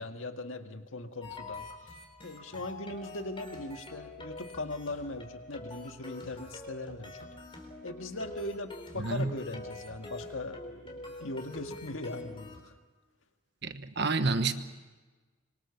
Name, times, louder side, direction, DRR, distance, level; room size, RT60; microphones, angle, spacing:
voice 1, 0.0-1.7 2.2-7.3 7.8-12.7, left 2 dB, 70° left, 1.9 m, -39 dB
sound 1, 1.2-12.6, left 2 dB, 25° left, 4.1 m, -45 dB
voice 2, 9.0-9.3 13.6-14.5, right 3 dB, 50° right, 1.2 m, -29 dB
25.5 x 23.5 x 7.1 m
head